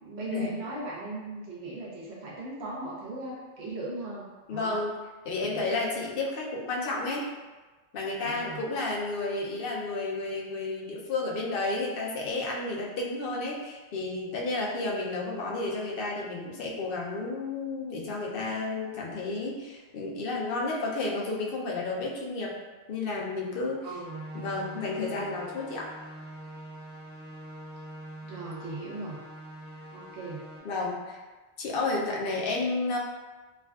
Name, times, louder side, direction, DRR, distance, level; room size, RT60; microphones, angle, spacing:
voice 1, 0.0-4.8 5.5-5.6 8.2-8.6 23.8-24.2 28.3-29.2 29.9-30.4, right 2 dB, 70° right, -6 dB, 1.0 m, -38 dB
voice 2, 4.5-4.9 5.2-7.3 7.9-22.6 22.9-23.9 24.3-25.9 30.6-31.2 31.6-33.0, left 3 dB, 60° left, -2 dB, 0.7 m, -31 dB
sound 1, 24.0-30.6, right 1 dB, 25° right, 0.3 m, -44 dB
3.4 x 2.3 x 2.2 m, 1.2 s
omnidirectional pair, 1.2 m